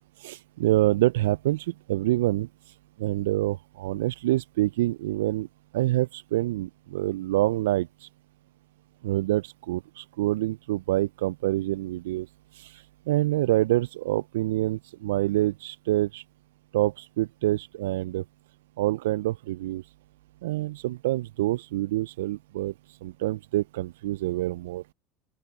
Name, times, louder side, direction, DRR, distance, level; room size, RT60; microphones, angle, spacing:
voice 1, 0.2-2.5 3.0-5.5 5.7-8.1 9.0-12.3 12.6-16.2 16.7-18.2 18.8-19.8 20.4-22.7 23.0-24.8, right 16 dB, 75° right, 0.4 m, -26 dB
open air
hypercardioid pair, 75°, 0 cm